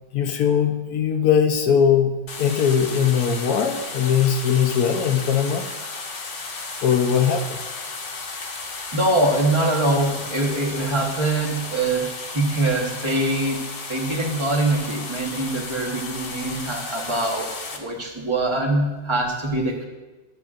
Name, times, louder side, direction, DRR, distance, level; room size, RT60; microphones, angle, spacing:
voice 1, 0.1-5.7 6.8-7.6, left 7 dB, 70° left, 5 dB, 1.0 m, -20 dB
sound 1, 2.3-17.8, left 3 dB, 45° left, 1.1 m, -34 dB
voice 2, 8.9-19.8, right 2 dB, 20° right, 0 dB, 0.9 m, -23 dB
14.0 x 7.7 x 2.5 m, 1.2 s
omnidirectional pair, 2.1 m